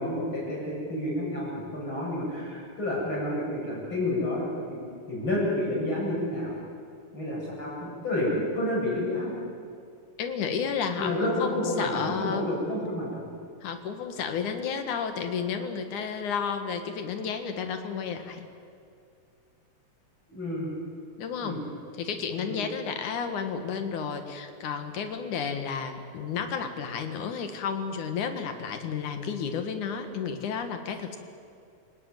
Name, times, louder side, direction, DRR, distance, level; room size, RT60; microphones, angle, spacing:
voice 1, 0.0-4.8 5.1-6.5 7.1-9.3 11.0-13.3 20.3-20.7 21.4-21.6 22.4-22.6, left 1 dB, 40° left, -4 dB, 8.6 m, -30 dB
voice 2, 10.2-12.5 13.6-18.5 21.2-21.6 21.9-31.2, left 6 dB, 80° left, 7 dB, 3.1 m, -32 dB
28.0 x 18.0 x 9.2 m, 2.4 s
omnidirectional pair, 3.5 m